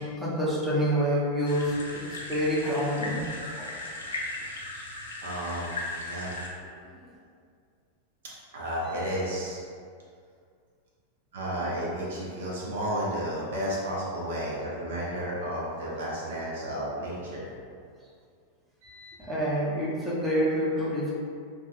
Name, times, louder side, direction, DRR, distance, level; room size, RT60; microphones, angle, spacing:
voice 1, 0.2-2.0 2.3-3.2 3.5-3.7 19.2-21.1, equal, 5° right, -8 dB, 0.6 m, -27 dB
sound 1, 1.4-6.5, left 2 dB, 70° left, 0.4 m, -37 dB
voice 2, 5.2-5.8 6.1-6.3 8.5-9.6 11.3-17.5 18.8-19.1, equal, 60° right, -6 dB, 0.6 m, -32 dB
2.5 x 2.5 x 2.3 m, 2.2 s
figure-of-eight pair, 90°, 0 cm